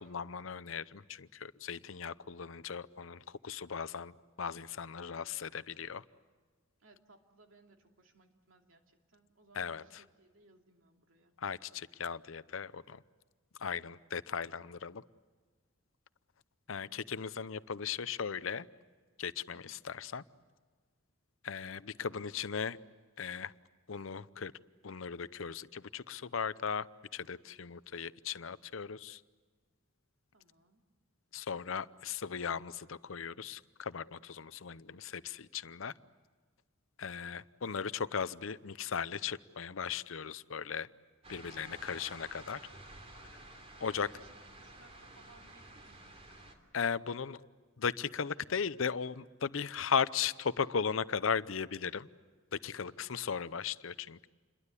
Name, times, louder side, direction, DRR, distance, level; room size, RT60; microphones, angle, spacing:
voice 1, 0.0-4.1 4.4-6.0 9.5-10.0 11.4-13.0 13.6-15.0 16.7-18.7 19.2-20.2 21.4-22.8 23.2-23.5 23.9-24.5 24.8-26.9 27.1-29.2 31.3-35.9 37.0-40.9 41.3-42.6 43.8-44.1 46.7-47.4 47.8-52.1 52.5-54.3, left 6 dB, 75° left, 16 dB, 0.7 m, -37 dB
voice 2, 6.8-11.3 19.5-19.7 22.0-22.2 30.3-30.9 43.8-46.2 52.8-53.1, right 3 dB, 75° right, 3 dB, 2.8 m, -63 dB
sound 1, 41.2-46.6, right 1 dB, 30° right, 3.1 m, -52 dB
28.5 x 22.0 x 8.4 m, 1.5 s
head